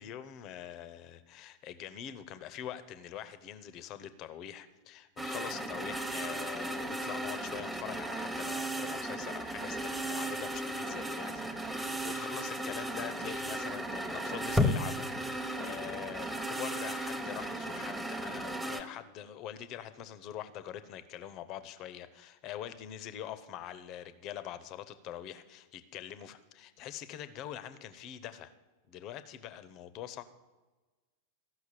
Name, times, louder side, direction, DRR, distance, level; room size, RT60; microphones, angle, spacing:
voice 1, 0.0-28.5 28.9-30.2, left 11 dB, 40° left, 13 dB, 0.8 m, -44 dB
sound 1, 5.2-18.8, equal, 5° right, 1.1 m, -35 dB
14.5 x 6.1 x 7.5 m, 1.2 s
figure-of-eight pair, 90°, 0 cm